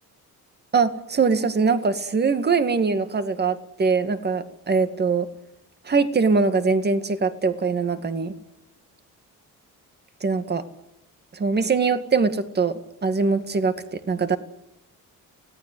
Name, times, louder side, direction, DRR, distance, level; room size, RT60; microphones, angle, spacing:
voice 1, 0.7-5.3 5.9-8.3 10.2-10.6 11.3-14.4, right 4 dB, 30° right, 9 dB, 2.2 m, -22 dB
29.5 x 18.0 x 8.0 m, 0.89 s
cardioid pair, 145°, 33 cm